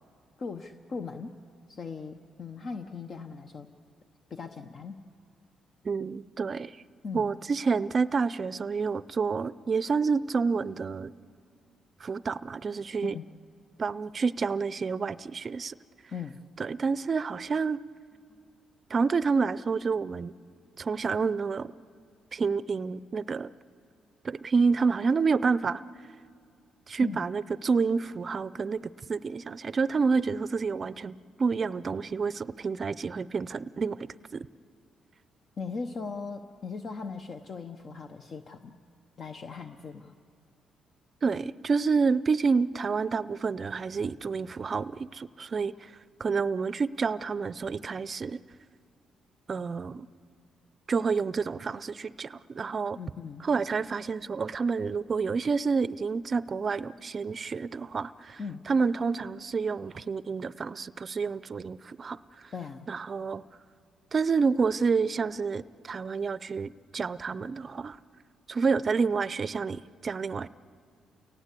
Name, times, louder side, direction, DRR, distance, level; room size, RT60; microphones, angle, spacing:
voice 1, 0.4-1.4 1.7-3.7 4.3-5.0 7.0-7.3 13.0-13.3 16.1-16.4 27.0-27.2 35.6-38.7 39.2-40.1 53.0-53.4 58.4-58.6 62.5-62.9, left 4 dB, 50° left, 7 dB, 0.9 m, -38 dB
voice 2, 5.8-6.8 7.1-11.1 12.0-13.1 13.8-15.7 16.6-17.8 18.9-20.3 20.8-21.7 22.3-23.5 24.2-25.8 26.9-28.8 29.1-34.5 41.2-48.4 49.5-50.1 50.9-53.0 53.4-58.4 58.7-62.5 62.9-63.4 64.1-68.0 68.5-70.5, right 5 dB, 40° right, 17 dB, 0.5 m, -29 dB
29.0 x 18.0 x 8.3 m, 2.3 s
cardioid pair, 90°, 0 cm